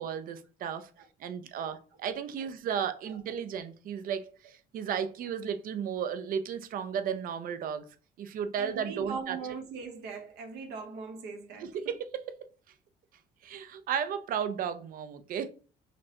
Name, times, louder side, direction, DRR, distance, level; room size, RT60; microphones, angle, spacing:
voice 1, 0.0-0.9 1.2-9.4 11.6-12.4 13.4-15.5, right 8 dB, 55° right, 0.5 m, -34 dB
voice 2, 8.6-11.7, right 5 dB, 80° right, 1.0 m, -40 dB
5.7 x 2.1 x 2.8 m
cardioid pair, 110°, 17 cm